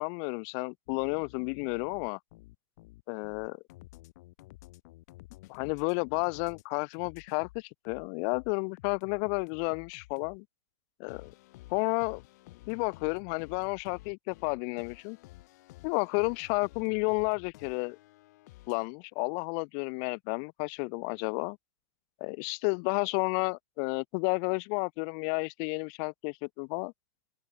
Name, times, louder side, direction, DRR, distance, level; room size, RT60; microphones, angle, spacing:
voice 1, 0.0-2.2 3.1-3.6 5.5-10.4 11.0-11.3 11.7-12.2 12.7-15.2 15.8-18.0 18.7-21.6 22.2-26.9, left 40 dB or more, 25° left, 0.4 m, -31 dB
sound 1, 0.9-6.6 6.9-10.4 11.1-18.9, left 19 dB, 40° left, 7.2 m, -53 dB
open air
hypercardioid pair, 165°, 13 cm